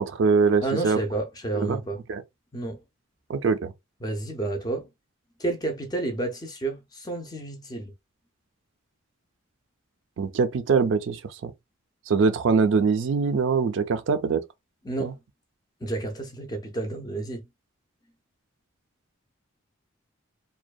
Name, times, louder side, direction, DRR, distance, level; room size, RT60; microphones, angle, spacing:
voice 1, 0.0-1.0 1.5-1.8 2.1-2.2 3.3-3.7 10.2-11.5 12.1-14.4 15.0-15.1, right 5 dB, 60° right, 0.3 m, -23 dB
voice 2, 0.6-2.0 2.5-2.8 4.0-4.9 5.4-7.9 14.8-15.2 15.8-17.4, right 2 dB, 20° left, 0.4 m, -30 dB
2.6 x 2.1 x 2.2 m
head